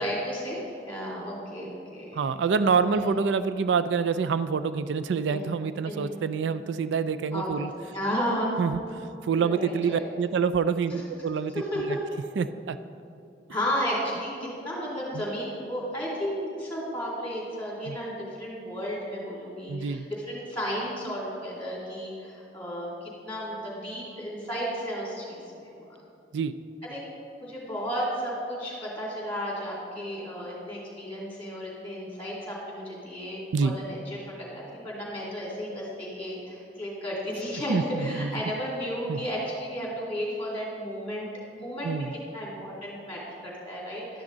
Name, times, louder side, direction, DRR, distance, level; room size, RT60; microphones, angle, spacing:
voice 1, 0.0-2.2 2.8-3.1 5.3-5.5 5.8-6.1 7.3-8.5 9.4-10.0 10.9-11.0 11.5-12.0 13.5-25.9 26.9-27.1 27.4-41.3 41.6-44.2, equal, 10° left, -4 dB, 2.6 m, -33 dB
voice 2, 2.1-7.7 8.6-12.0 12.4-12.8 15.1-15.2 17.9-18.0 19.7-20.1 26.3-26.6 33.5-33.7 37.7-38.3 39.1-39.3 41.8-42.1, right 5 dB, 80° right, 12 dB, 0.4 m, -27 dB
11.5 x 9.6 x 3.9 m, 2.6 s
head